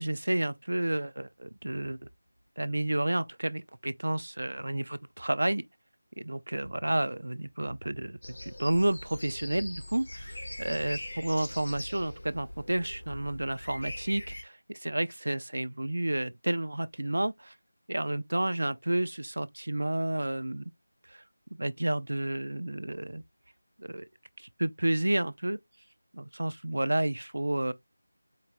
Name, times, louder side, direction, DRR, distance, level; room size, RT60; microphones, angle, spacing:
voice 1, 0.0-2.0 2.6-5.6 6.2-17.5 17.9-20.7 21.1-21.2 21.6-23.2 23.8-24.1 24.4-25.6 26.1-27.7, right 1 dB, 80° right, 0.4 m, -31 dB
sound 1, 8.2-14.4, left 1 dB, 50° left, 0.7 m, -42 dB
4.6 x 2.1 x 3.3 m
figure-of-eight pair, 175°, 0 cm